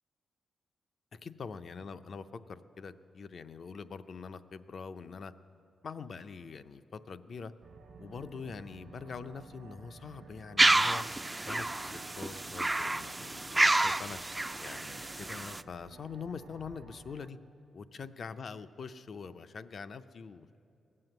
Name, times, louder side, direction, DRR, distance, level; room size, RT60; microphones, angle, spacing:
voice 1, 1.1-5.3 5.8-7.5 8.0-11.0 11.5-14.2 14.6-17.4 17.7-20.6, left 5 dB, 55° left, 11 dB, 0.5 m, -44 dB
sound 1, 7.6-17.3, right 4 dB, 75° right, 0.9 m, -54 dB
sound 2, 10.6-15.6, right 2 dB, 15° right, 0.3 m, -29 dB
19.5 x 7.6 x 7.9 m, 2.6 s
cardioid pair, 90°, 0 cm